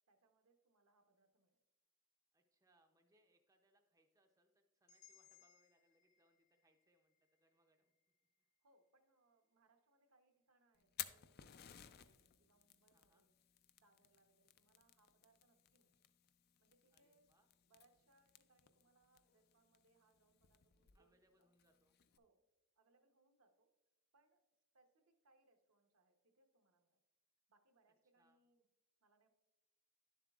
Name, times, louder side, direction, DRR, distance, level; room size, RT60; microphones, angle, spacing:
voice 1, 0.1-1.6 8.6-13.3 13.8-16.0 16.6-17.3 17.7-21.5 22.2-22.5 22.8-23.7 24.1-24.4 24.7-27.0 27.5-28.7 29.0-29.3, right 2 dB, 80° right, 5 dB, 0.9 m, -77 dB
voice 2, 2.3-7.9 12.9-13.2 16.9-17.5 20.9-21.9 28.2-28.4, right 1 dB, 15° right, 4 dB, 0.5 m, -78 dB
sound 1, 4.9-8.9, left 9 dB, 75° left, 1.7 m, -71 dB
Fire, 10.7-22.2, left 12 dB, 45° left, 0.3 m, -57 dB
10.5 x 7.3 x 2.3 m, 1.0 s
head